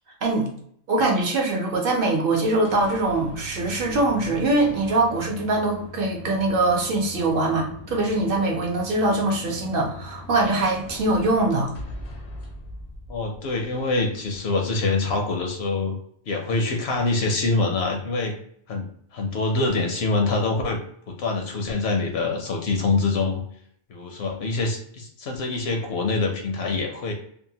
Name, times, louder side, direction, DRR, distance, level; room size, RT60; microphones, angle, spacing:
voice 1, 0.9-11.7, right 2 dB, 65° right, 0 dB, 0.9 m, -23 dB
sound 1, 2.4-14.0, left 2 dB, 45° left, 0.4 m, -41 dB
voice 2, 13.1-16.0 16.3-18.3 18.7-20.8 21.1-23.4 23.9-27.1, left 3 dB, 80° left, 3 dB, 0.9 m, -25 dB
2.8 x 2.2 x 2.7 m, 0.67 s
omnidirectional pair, 1.0 m